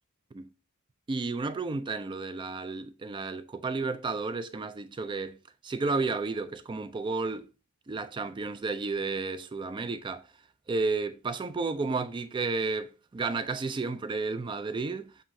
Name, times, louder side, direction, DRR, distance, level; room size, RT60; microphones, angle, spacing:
voice 1, 1.1-5.4 5.6-7.5 7.9-10.3 10.7-15.1, right 3 dB, 20° right, 0.3 m, -32 dB
7.4 x 2.6 x 2.6 m
head